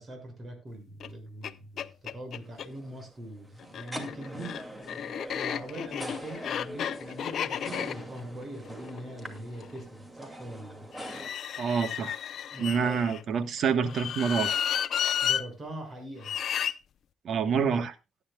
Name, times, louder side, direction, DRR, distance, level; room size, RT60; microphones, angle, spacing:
voice 1, 0.0-4.5 5.3-10.9 12.5-13.0 13.4-13.5 15.2-16.3, right 1 dB, 35° right, 6.4 m, -42 dB
sound 1, 1.0-1.1 1.4-1.5 1.8-2.7 3.6-9.8 10.9-13.2 13.8-15.4 16.2-16.7, left 9 dB, 65° left, 0.6 m, -33 dB
sound 2, 2.4-11.3, right 1 dB, 15° right, 2.5 m, -44 dB
voice 2, 11.6-12.2 12.6-14.6 17.2-17.9, right 6 dB, 65° right, 1.4 m, -27 dB
18.0 x 10.0 x 2.4 m
cardioid pair, 90°, 0 cm